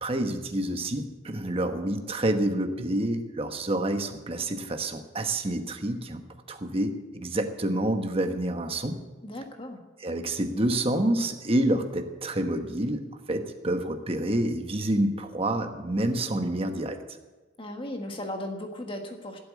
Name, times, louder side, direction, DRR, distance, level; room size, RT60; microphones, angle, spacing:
voice 1, 0.0-6.2 6.5-9.0 10.0-17.0, right 1 dB, 30° right, 6 dB, 1.1 m, -28 dB
voice 2, 9.2-9.8 17.6-19.4, left 1 dB, 25° left, 3 dB, 1.6 m, -36 dB
16.0 x 8.3 x 8.3 m, 1.2 s
head